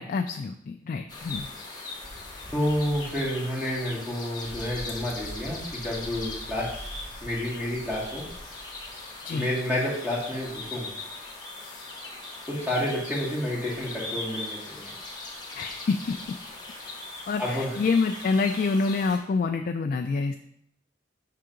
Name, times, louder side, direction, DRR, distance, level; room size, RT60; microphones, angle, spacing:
voice 1, 0.0-1.5 9.2-9.5 15.6-16.2 17.3-20.4, left 4 dB, 50° left, 6 dB, 0.3 m, -27 dB
sound 1, 1.1-19.2, left 2 dB, 25° left, 1.3 m, -39 dB
voice 2, 2.5-6.7 7.2-8.2 9.3-10.9 12.5-14.9 17.4-17.7, left 1 dB, 10° right, -5 dB, 1.9 m, -29 dB
5.7 x 3.7 x 5.1 m, 0.73 s
head